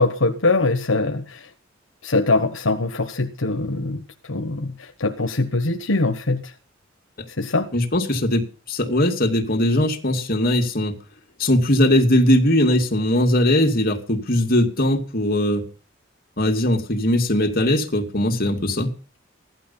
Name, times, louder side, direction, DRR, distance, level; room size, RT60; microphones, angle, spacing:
voice 1, 0.0-1.5 2.0-6.5 7.4-7.7, left 3 dB, 80° left, 1.4 m, -22 dB
voice 2, 7.7-10.9 11.4-15.6 16.4-18.9, left 1 dB, 50° left, 2.6 m, -20 dB
15.5 x 11.5 x 5.7 m
head